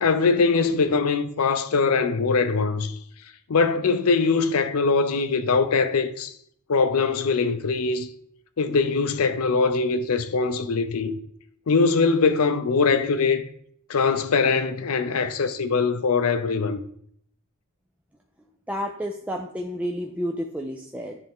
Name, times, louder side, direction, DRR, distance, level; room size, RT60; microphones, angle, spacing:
voice 1, 0.0-2.9 3.5-6.3 6.7-8.1 8.6-11.1 11.7-13.5 13.9-16.8, left 4 dB, 75° left, 0.6 m, -22 dB
voice 2, 18.7-21.2, equal, 5° right, 0.3 m, -30 dB
10.0 x 3.4 x 3.6 m
head